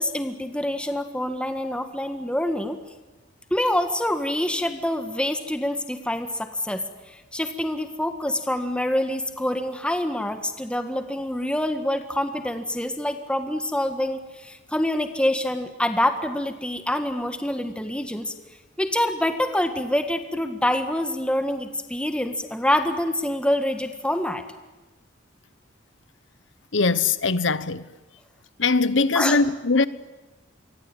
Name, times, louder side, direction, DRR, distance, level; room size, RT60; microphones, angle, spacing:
voice 1, 0.0-2.8 3.5-18.3 18.8-24.4 29.1-29.4, left 1 dB, 5° left, 1.6 m, -26 dB
voice 2, 26.7-27.8 28.6-29.9, left 4 dB, 85° left, 1.1 m, -21 dB
28.0 x 23.5 x 9.1 m
head